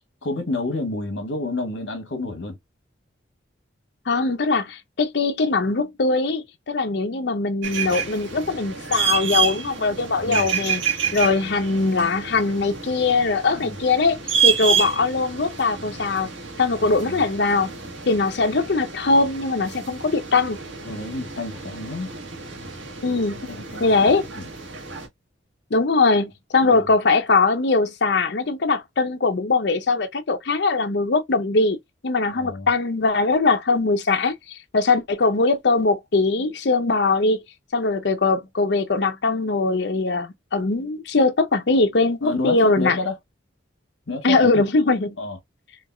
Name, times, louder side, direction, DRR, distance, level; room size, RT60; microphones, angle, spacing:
voice 1, 0.2-2.6 10.2-10.5 13.5-13.8 16.8-17.2 20.8-22.1 23.5-24.4 26.7-26.8 32.3-32.7 42.2-43.1 44.1-44.6 45.2-45.4, left 2 dB, 80° left, 1.1 m, -29 dB
voice 2, 4.1-10.8 11.1-16.3 16.6-17.7 18.1-20.6 23.0-23.4 23.8-24.3 25.7-31.8 32.0-37.4 37.7-43.0 44.2-45.1, left 3 dB, 60° left, 0.6 m, -21 dB
sound 1, 7.6-25.1, right 6 dB, 75° right, 1.2 m, -29 dB
4.5 x 2.3 x 2.2 m
head